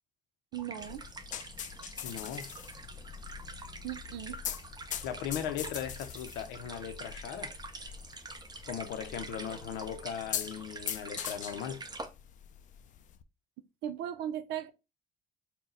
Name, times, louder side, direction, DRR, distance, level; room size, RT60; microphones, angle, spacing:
sound 1, 0.5-12.1, right 3 dB, 25° right, 0.8 m, -46 dB
voice 1, 0.5-1.0 3.8-4.4 13.8-14.7, right 10 dB, 85° right, 0.5 m, -37 dB
sound 2, 0.8-13.2, left 9 dB, 50° left, 0.4 m, -43 dB
voice 2, 2.0-2.5 5.0-7.5 8.7-11.8, left 9 dB, 85° left, 0.7 m, -38 dB
4.0 x 2.2 x 3.9 m
cardioid pair, 110°, 17 cm